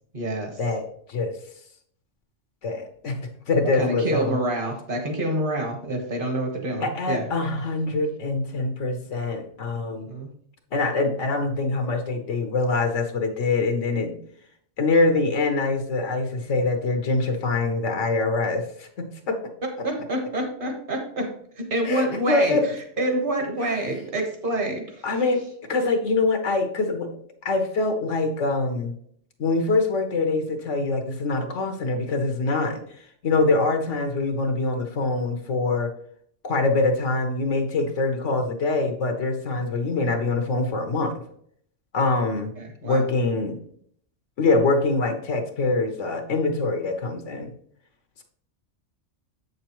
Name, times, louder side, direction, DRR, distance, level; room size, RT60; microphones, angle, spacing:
voice 1, 0.1-0.6 3.8-7.2 9.8-10.3 19.8-21.3 21.6-22.6 23.0-25.0 42.6-43.0, right 1 dB, 45° right, 3 dB, 1.5 m, -27 dB
voice 2, 2.6-3.2 3.5-4.4 6.8-10.1 10.7-14.2 14.8-19.4 21.8-22.6 23.6-23.8 25.0-25.4 25.7-27.1 27.4-28.9 29.4-35.9 36.4-41.2 41.9-42.5 42.8-43.6 44.4-47.5, left 3 dB, 75° left, 5 dB, 1.3 m, -24 dB
7.7 x 6.6 x 3.0 m, 0.64 s
omnidirectional pair, 1.2 m